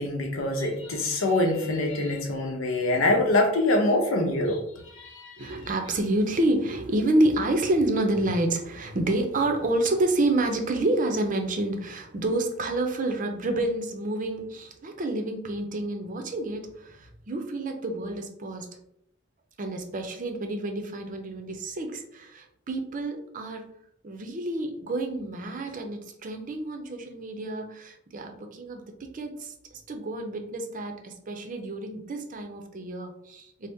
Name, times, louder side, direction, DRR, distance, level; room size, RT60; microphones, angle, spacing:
voice 1, 0.0-4.6 4.9-5.5, left 2 dB, 80° left, 3 dB, 0.7 m, -25 dB
voice 2, 5.4-18.7 19.6-23.6 24.0-29.5 29.9-33.7, right 2 dB, 40° right, 4 dB, 0.5 m, -28 dB
3.9 x 2.0 x 3.5 m, 0.76 s
head